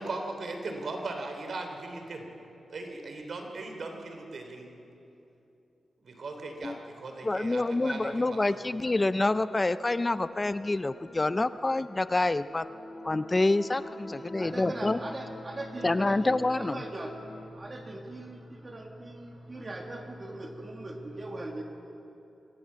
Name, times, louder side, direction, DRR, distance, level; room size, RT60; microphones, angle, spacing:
voice 1, 0.0-2.3 2.7-4.7 6.0-9.0, right 2 dB, 60° right, 4 dB, 3.2 m, -38 dB
voice 2, 7.2-12.7 13.0-15.0 15.8-16.8, left 2 dB, 20° left, 14 dB, 0.5 m, -27 dB
sound 1, 9.7-17.5, left 2 dB, 80° left, 4.5 m, -46 dB
voice 3, 14.2-21.6, right 2 dB, 30° right, 2 dB, 2.0 m, -40 dB
25.0 x 14.5 x 8.6 m, 2.9 s
wide cardioid pair, 110°, 0 cm